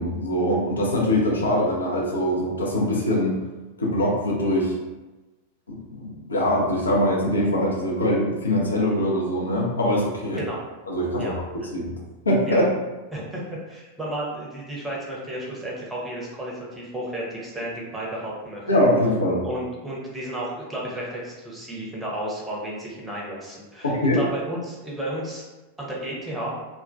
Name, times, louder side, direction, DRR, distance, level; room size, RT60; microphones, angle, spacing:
voice 1, 0.0-3.4 3.8-4.8 5.7-10.4 10.9-11.4 11.7-12.0 12.3-12.7 18.7-19.4 23.8-24.2, left 1 dB, 75° left, -3 dB, 0.5 m, -23 dB
voice 2, 13.1-18.7 19.4-25.5 25.8-26.5, right 1 dB, 10° right, -4 dB, 0.7 m, -32 dB
2.2 x 2.1 x 2.5 m, 1.1 s
figure-of-eight pair, 90°, 0 cm